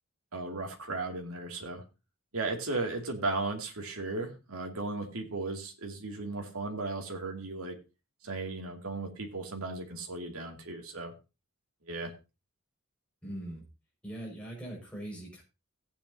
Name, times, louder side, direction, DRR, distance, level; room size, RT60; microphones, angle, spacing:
voice 1, 0.3-1.8 2.3-7.8 8.2-11.1 11.8-12.1, right 3 dB, 85° right, 2 dB, 2.4 m, -36 dB
voice 2, 13.2-13.6 14.0-15.4, right 1 dB, 5° left, -3 dB, 5.6 m, -41 dB
17.0 x 8.8 x 2.8 m, 0.28 s
head